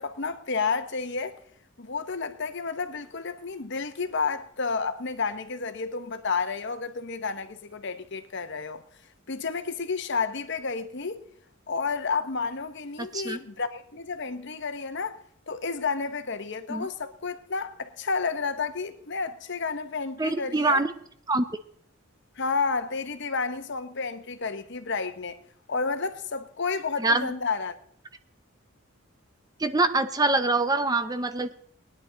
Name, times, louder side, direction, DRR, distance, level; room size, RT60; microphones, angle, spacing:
voice 1, 0.0-1.4 1.8-8.8 9.3-11.2 11.7-15.2 15.5-20.8 22.4-25.4 25.7-27.8, left 4 dB, 55° left, 1.0 m, -31 dB
voice 2, 13.0-13.4 16.7-16.9 20.2-20.9 21.3-21.4 27.0-27.3 29.6-31.5, right 2 dB, 20° right, 0.6 m, -24 dB
20.0 x 10.0 x 3.9 m
head